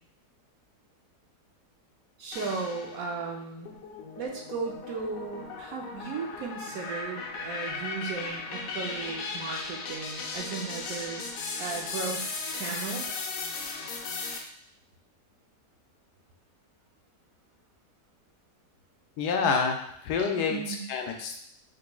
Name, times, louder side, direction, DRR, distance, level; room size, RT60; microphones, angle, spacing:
voice 1, 2.2-3.7 4.2-11.2 11.6-13.1 20.5-20.8, right 5 dB, 65° right, 0 dB, 1.0 m, -36 dB
sound 1, 2.3-3.2 3.7-14.4, left 4 dB, 70° left, 0.9 m, -37 dB
voice 2, 19.2-20.6 20.9-21.4, left 5 dB, 85° left, 3 dB, 1.2 m, -27 dB
5.0 x 3.0 x 2.2 m, 0.70 s
omnidirectional pair, 1.7 m